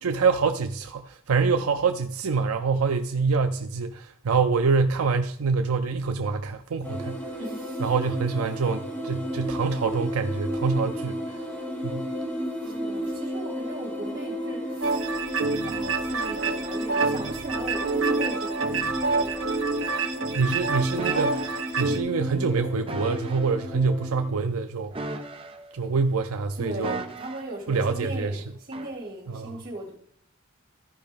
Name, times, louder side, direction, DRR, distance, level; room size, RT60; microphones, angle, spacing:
voice 1, 0.0-7.3 7.8-11.4 11.8-12.1 20.4-24.9 25.7-27.0 27.7-28.4 29.3-29.6, right 4 dB, 90° right, 0.5 m, -26 dB
sound 1, 6.8-24.3, equal, 10° left, 1.7 m, -33 dB
voice 2, 7.4-7.8 12.6-15.2 15.6-20.3 26.6-30.0, right 1 dB, 45° right, 2.7 m, -38 dB
sound 2, 14.8-22.0, right 4 dB, 65° right, 1.0 m, -27 dB
sound 3, 21.0-21.6 22.9-23.5 24.9-25.8 26.8-27.6 28.7-29.0, right 2 dB, 25° right, 0.6 m, -36 dB
14.0 x 5.2 x 3.5 m
head